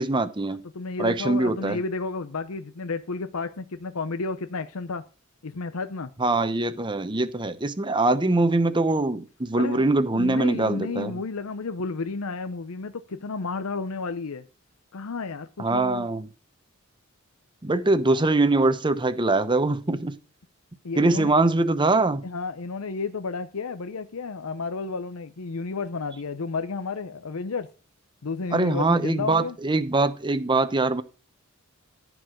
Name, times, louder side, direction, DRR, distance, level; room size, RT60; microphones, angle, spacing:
voice 1, 0.0-0.6 1.0-1.8 6.2-11.2 15.6-16.3 17.6-20.1 21.0-22.3 28.5-31.0, right 2 dB, 20° right, 0.8 m, -23 dB
voice 2, 0.7-5.0 5.4-6.1 9.5-14.5 14.9-16.1 20.8-21.4 22.2-27.7 28.2-29.6, left 4 dB, 80° left, 0.7 m, -32 dB
14.5 x 4.8 x 6.3 m
head